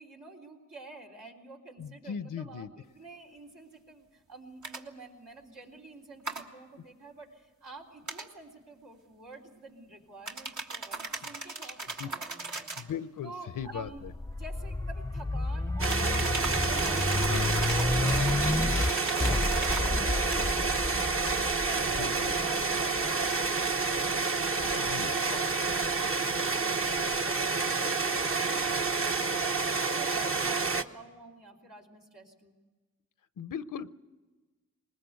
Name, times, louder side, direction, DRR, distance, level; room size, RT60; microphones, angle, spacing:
voice 1, 0.0-12.7 13.2-14.0 14.3-24.2 24.5-32.5, right 3 dB, 85° right, -2 dB, 3.8 m, -49 dB
voice 2, 1.8-2.7 11.5-11.6 12.0-12.1 12.8-14.1 17.3-17.6 18.0-18.7 20.3-20.6 22.0-22.3 24.8-25.1 33.4-33.9, left 7 dB, 80° left, 15 dB, 0.7 m, -39 dB
sound 1, 4.6-4.8 6.2-6.4 8.1-8.3 10.3-12.9 15.8-19.9 20.3-20.5, right 3 dB, 65° right, 1.8 m, -38 dB
sound 2, 13.6-24.4 24.9-26.1, left 2 dB, 10° left, 0.6 m, -31 dB
sound 3, 15.8-30.8, right 4 dB, 45° right, 1.0 m, -29 dB
20.0 x 20.0 x 8.2 m, 1.3 s
cardioid pair, 45°, 32 cm